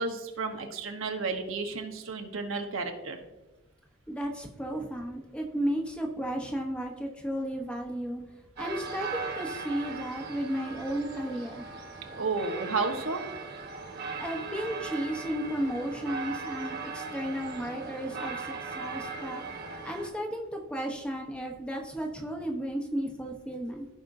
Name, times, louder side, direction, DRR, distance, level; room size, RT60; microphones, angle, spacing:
voice 1, 0.0-3.2 12.2-13.2, right 3 dB, 75° right, 4 dB, 1.1 m, -32 dB
voice 2, 4.1-8.2 8.6-11.7 14.2-23.9, equal, 5° left, 1 dB, 0.8 m, -34 dB
sound 1, 8.6-20.1, right 4 dB, 50° right, 1.3 m, -39 dB
15.5 x 5.1 x 2.6 m, 1.0 s
head